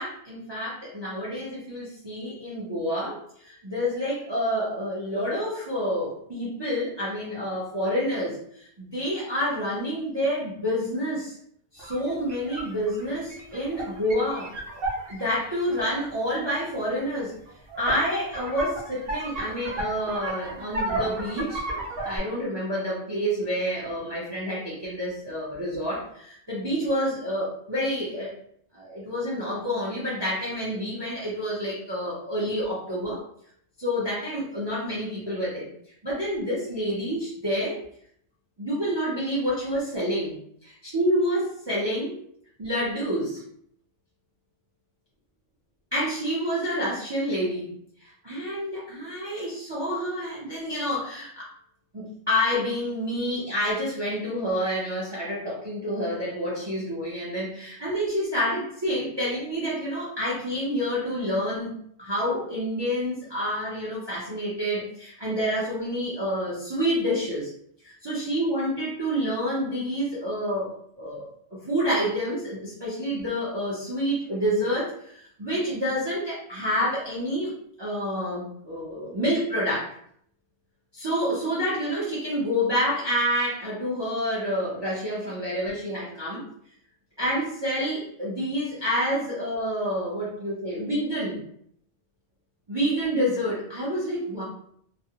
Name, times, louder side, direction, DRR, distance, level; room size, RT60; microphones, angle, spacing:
voice 1, 0.0-11.4 11.7-14.5 15.1-17.3 17.8-21.6 22.0-28.3 28.7-33.2 33.8-35.7 36.0-37.8 38.6-42.2 42.6-43.4 45.9-47.7 48.0-51.5 51.9-61.7 62.0-67.5 67.8-71.3 71.7-77.5 77.8-80.0 80.9-86.4 87.2-91.4 92.7-94.4, equal, 35° right, -6 dB, 0.4 m, -28 dB
sound 1, 11.8-16.1 17.1-17.2 17.5-22.2, right 2 dB, 55° right, 0.8 m, -33 dB
2.4 x 2.1 x 2.7 m, 0.67 s
omnidirectional pair, 1.3 m